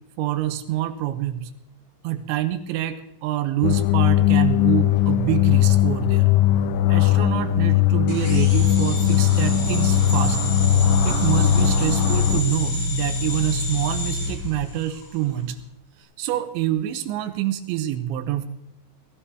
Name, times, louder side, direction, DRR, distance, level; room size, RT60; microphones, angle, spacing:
voice 1, 0.2-1.5 2.0-6.3 6.9-10.4 11.0-15.6 16.2-18.5, right 13 dB, 80° right, 9 dB, 2.8 m, -26 dB
sound 1, 3.6-12.4, left 12 dB, 85° left, 2.4 m, -19 dB
sound 2, 8.1-15.2, left 1 dB, 40° left, 6.3 m, -27 dB
17.0 x 15.5 x 3.5 m, 0.82 s
omnidirectional pair, 5.8 m